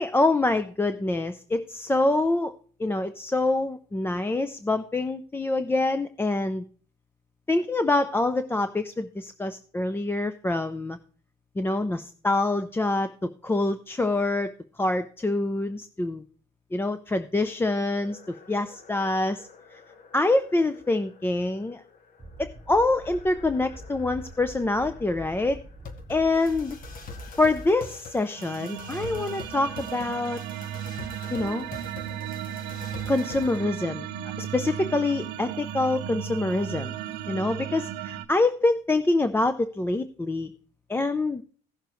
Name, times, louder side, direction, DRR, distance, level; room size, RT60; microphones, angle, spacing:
voice 1, 0.0-2.5 2.8-6.6 7.5-11.0 11.6-14.5 14.8-16.2 16.7-18.2 18.5-19.8 20.1-21.8 22.4-25.6 26.1-26.8 27.4-30.4 31.3-31.7 33.1-34.1 34.4-36.9 37.3-40.5 40.9-41.4, left 2 dB, 15° left, 10 dB, 0.5 m, -25 dB
Shut Down, 17.6-33.6, left 4 dB, 55° left, 1.2 m, -46 dB
sound 1, 22.2-28.0, right 1 dB, 15° right, 1.1 m, -44 dB
sound 2, 28.4-38.3, right 11 dB, 85° right, 0.7 m, -35 dB
16.0 x 6.6 x 3.0 m, 0.43 s
cardioid pair, 110°, 17 cm